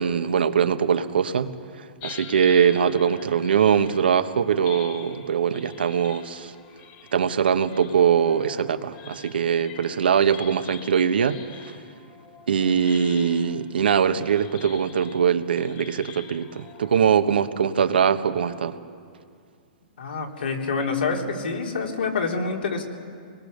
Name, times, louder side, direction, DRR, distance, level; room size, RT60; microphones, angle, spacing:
voice 1, 0.0-1.5 2.0-6.5 7.1-11.4 11.6-11.7 12.5-18.8, right 7 dB, 90° right, 9 dB, 1.3 m, -22 dB
sound 1, 2.0-17.0, left 8 dB, 35° left, 1.9 m, -45 dB
voice 2, 20.0-22.8, left 4 dB, 85° left, 1 dB, 3.6 m, -27 dB
26.5 x 21.0 x 6.7 m, 2.2 s
hypercardioid pair, 155°, 5 cm